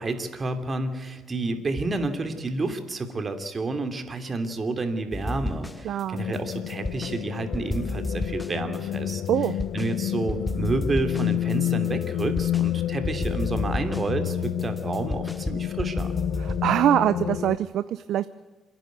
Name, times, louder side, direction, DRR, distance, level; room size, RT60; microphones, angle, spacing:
voice 1, 0.0-9.2 9.7-16.1, right 2 dB, 35° right, 7 dB, 2.9 m, -30 dB
sound 1, 5.1-6.0 6.3-7.2 7.5-9.9 10.3-12.7 13.0-16.7, left 2 dB, 10° left, 0.8 m, -32 dB
voice 2, 5.8-6.2 9.3-9.5 16.4-18.3, right 11 dB, 75° right, 14 dB, 0.6 m, -23 dB
sound 2, 6.1-17.6, left 12 dB, 85° left, 0.6 m, -29 dB
28.5 x 10.5 x 9.4 m, 1.3 s
cardioid pair, 90°, 0 cm